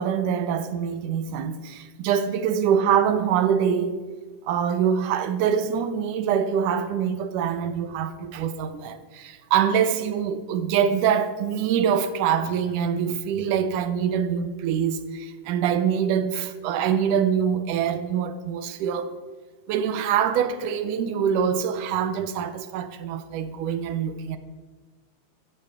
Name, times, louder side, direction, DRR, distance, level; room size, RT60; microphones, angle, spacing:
voice 1, 0.0-4.0 4.5-19.1 19.7-24.4, right 8 dB, 85° right, 2.4 m, -24 dB
15.0 x 13.5 x 3.7 m
omnidirectional pair, 3.5 m